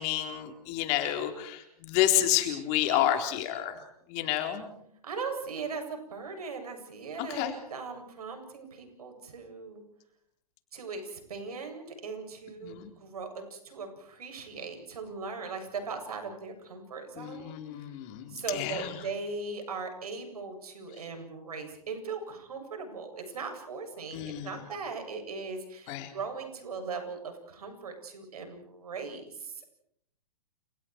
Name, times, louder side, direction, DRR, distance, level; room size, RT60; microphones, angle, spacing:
voice 1, 0.0-3.8 4.1-4.7 7.3-7.5 12.6-12.9 17.2-18.9 24.1-24.5 25.9-26.1, left 12 dB, 35° left, 5 dB, 4.2 m, -29 dB
voice 2, 5.0-9.8 10.7-17.6 18.3-29.7, right 4 dB, 75° right, 5 dB, 7.8 m, -39 dB
30.0 x 29.0 x 4.7 m, 0.73 s
hypercardioid pair, 125°, 19 cm